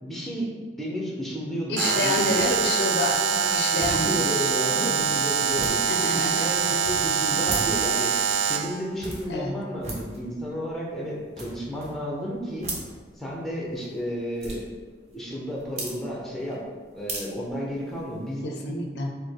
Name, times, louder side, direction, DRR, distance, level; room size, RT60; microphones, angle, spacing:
voice 1, 0.0-2.5 3.3-5.8 6.1-8.1 8.4-12.7 13.2-14.6 15.1-16.6 16.9-18.5, equal, ahead, -3 dB, 0.7 m, -32 dB
voice 2, 1.7-4.5 5.9-6.5 7.3-7.4 9.3-9.6 18.4-19.1, left 2 dB, 65° left, 1 dB, 0.6 m, -28 dB
Alarm, 1.8-8.8, right 6 dB, 85° right, 0.3 m, -24 dB
sound 1, 2.1-18.3, right 2 dB, 35° right, 0.8 m, -41 dB
4.9 x 2.2 x 4.5 m, 1.5 s
head